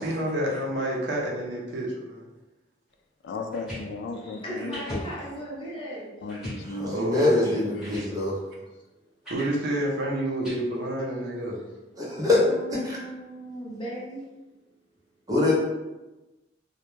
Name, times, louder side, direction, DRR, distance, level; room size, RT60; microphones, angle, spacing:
voice 1, 0.0-2.3 6.8-7.6 9.3-11.6, right 1 dB, 70° right, -3 dB, 0.6 m, -29 dB
voice 2, 3.2-5.0 6.2-7.0, left 3 dB, 70° left, 5 dB, 0.3 m, -35 dB
sound 1, 3.4-3.8 4.7-5.0 5.5-5.6 6.3-6.6 7.4-7.5 7.8-8.1 9.2-9.5 10.4-10.5, equal, ahead, 1.1 m, -37 dB
voice 3, 4.1-6.1 8.7-8.8 12.0-14.2, equal, 30° left, -6 dB, 0.8 m, -38 dB
voice 4, 6.8-8.4 12.0-12.4 15.3-15.5, left 2 dB, 20° right, -5 dB, 0.6 m, -23 dB
2.1 x 2.1 x 3.0 m, 1.1 s
head